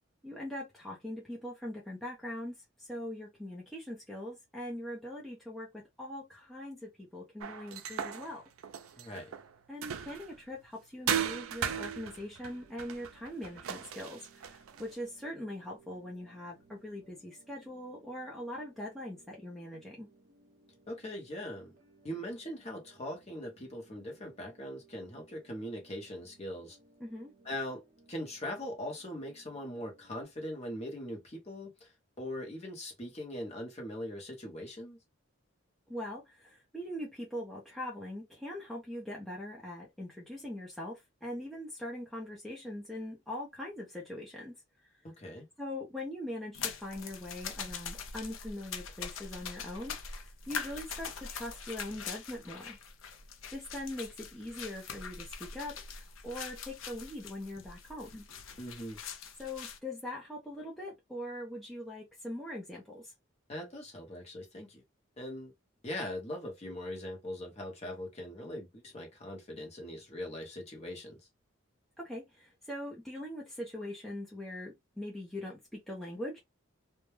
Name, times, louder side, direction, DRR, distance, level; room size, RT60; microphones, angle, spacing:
voice 1, 0.2-8.4 9.7-20.1 27.0-27.3 35.9-44.6 45.6-52.8 53.5-58.3 59.4-63.1 72.0-76.4, left 1 dB, ahead, 0.5 m, -42 dB
sound 1, 7.4-10.4 11.1-14.9, right 8 dB, 85° right, 0.4 m, -37 dB
voice 2, 9.0-9.3 20.9-21.7 22.0-26.8 27.4-27.8 28.1-31.9 32.2-35.0 45.0-45.5 58.6-59.0 63.5-64.8 65.2-65.5 65.8-71.2, left 1 dB, 30° left, 0.8 m, -41 dB
sound 2, 11.8-30.2, right 3 dB, 40° right, 0.8 m, -63 dB
sound 3, 46.5-59.8, left 6 dB, 75° left, 0.5 m, -43 dB
2.2 x 2.1 x 3.0 m
head